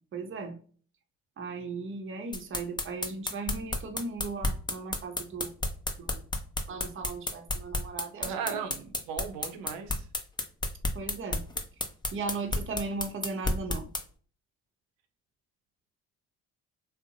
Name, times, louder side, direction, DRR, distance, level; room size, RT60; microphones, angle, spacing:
voice 1, 0.1-0.6 1.4-5.5 6.0-6.2 6.7-8.6 10.9-11.4 12.1-13.9, right 4 dB, 35° right, 5 dB, 0.7 m, -37 dB
sound 1, 2.3-14.0, left 2 dB, 10° left, 0.5 m, -31 dB
voice 2, 8.2-10.0, right 6 dB, 75° right, 7 dB, 0.7 m, -36 dB
2.6 x 2.1 x 2.8 m, 0.43 s
hypercardioid pair, 60°, 38 cm